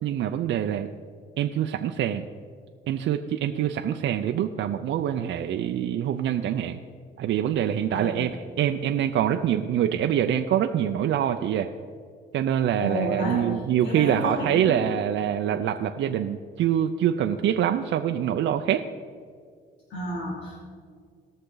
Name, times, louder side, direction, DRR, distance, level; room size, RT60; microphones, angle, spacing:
voice 1, 0.0-0.9 1.4-2.3 2.9-6.8 7.2-11.7 12.3-18.8, right 10 dB, 70° right, 5 dB, 0.6 m, -25 dB
voice 2, 12.8-13.5 13.8-14.8 19.9-20.6, left 1 dB, 75° left, -5 dB, 2.7 m, -30 dB
19.0 x 6.6 x 3.9 m, 2.1 s
cardioid pair, 90°, 20 cm